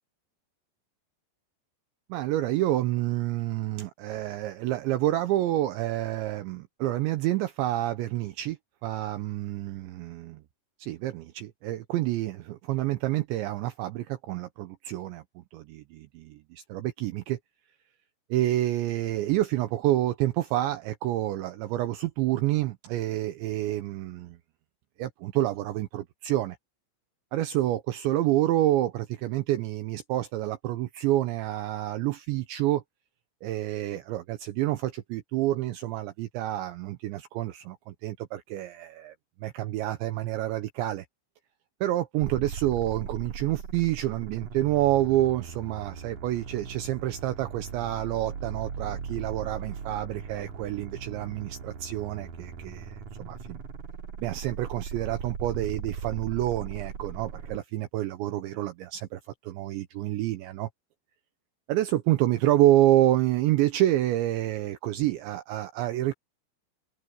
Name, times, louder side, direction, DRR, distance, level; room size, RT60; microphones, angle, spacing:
voice 1, 2.1-8.6 8.8-10.4 10.8-16.4 16.7-17.4 18.3-24.4 25.0-26.6 27.3-32.8 33.4-39.1 39.4-41.1 41.8-53.6 54.2-60.7 61.7-66.1, right 14 dB, 75° right, 2.9 m, -28 dB
sound 1, 42.2-57.6, right 6 dB, 50° right, 3.0 m, -39 dB
omnidirectional pair, 5.9 m